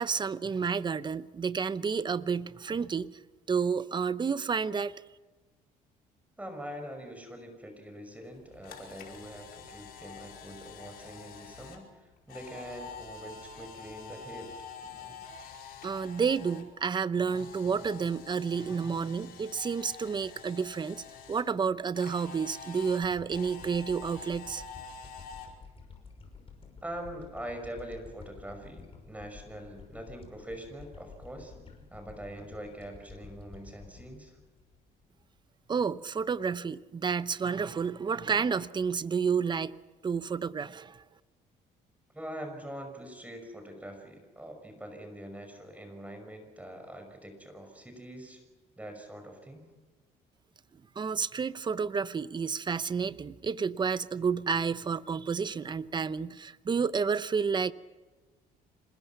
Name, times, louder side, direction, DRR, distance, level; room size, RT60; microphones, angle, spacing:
voice 1, 0.0-3.2 3.5-5.0 15.8-24.6 35.7-39.7 40.0-41.0 51.0-57.7, right 6 dB, 25° right, 0.8 m, -30 dB
voice 2, 6.4-14.5 26.8-31.5 31.9-34.4 42.1-48.4 48.8-49.6, right 1 dB, 10° right, 5.8 m, -43 dB
Camera, 8.3-16.6 16.9-21.4 21.9-25.5, left 5 dB, 65° left, 4.8 m, -47 dB
sound 1, 23.0-35.5, left 5 dB, 35° left, 5.8 m, -51 dB
26.5 x 21.0 x 5.9 m
cardioid pair, 110°, 17 cm